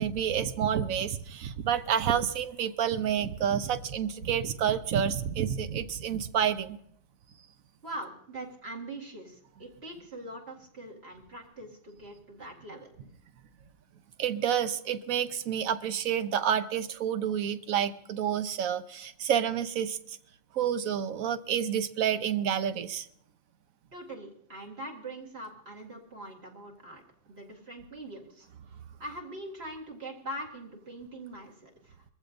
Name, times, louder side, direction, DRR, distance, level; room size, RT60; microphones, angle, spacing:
voice 1, 0.0-6.8 14.2-20.0 20.5-23.1, right 9 dB, 90° right, 11 dB, 1.2 m, -29 dB
voice 2, 7.8-12.9 23.9-28.5 29.0-32.0, right 1 dB, 50° right, -1 dB, 2.3 m, -42 dB
22.0 x 15.0 x 2.6 m, 0.70 s
omnidirectional pair, 1.4 m